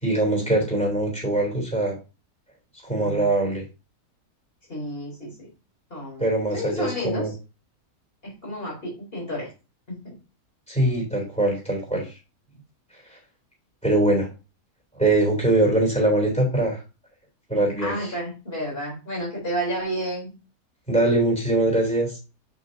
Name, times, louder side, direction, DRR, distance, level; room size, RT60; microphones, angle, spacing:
voice 1, 0.0-2.0 2.8-3.6 6.2-7.3 10.7-12.1 13.8-14.3 15.0-16.8 17.5-18.1 20.9-22.2, right 2 dB, 5° left, -1 dB, 3.5 m, -22 dB
voice 2, 4.7-5.5 5.9-7.3 8.2-9.5 9.9-10.1 17.8-20.3, equal, 40° left, -3 dB, 3.8 m, -31 dB
7.2 x 6.0 x 2.7 m, 0.31 s
omnidirectional pair, 1.6 m